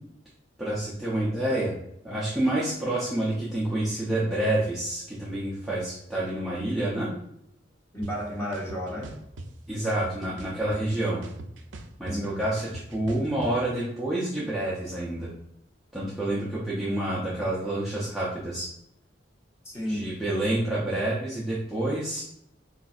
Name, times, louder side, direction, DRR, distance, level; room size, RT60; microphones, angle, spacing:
voice 1, 0.6-1.8 2.0-7.1 9.7-11.2 12.0-15.3 15.9-18.7 19.9-22.2, right 1 dB, ahead, -9 dB, 0.5 m, -28 dB
voice 2, 7.9-9.2 12.0-12.4 19.6-20.6, equal, 15° left, -5 dB, 0.9 m, -33 dB
sound 1, 8.0-8.1 8.5-9.5 9.9-10.9 11.2-13.5, right 2 dB, 85° right, 0.4 m, -41 dB
4.0 x 2.6 x 2.3 m, 0.78 s
head